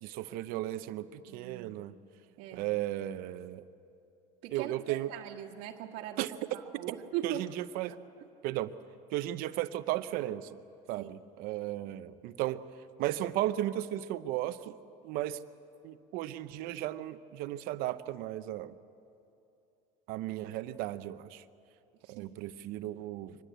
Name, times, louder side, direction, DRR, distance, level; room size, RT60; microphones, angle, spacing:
voice 1, 0.0-1.9 2.5-3.6 4.5-5.1 6.2-6.3 7.2-7.9 8.4-8.7 9.1-10.5 10.9-12.6 13.0-14.7 15.0-15.4 15.8-18.7 20.1-21.4 22.1-23.4, right 14 dB, 65° right, 12 dB, 0.8 m, -35 dB
voice 2, 1.3-1.9 2.4-2.7 4.4-6.2 6.5-7.4 8.2-8.3 11.0-11.1 22.0-22.4, right 11 dB, 85° right, 0 dB, 1.6 m, -40 dB
24.0 x 20.5 x 8.0 m, 2.7 s
cardioid pair, 160°, 16 cm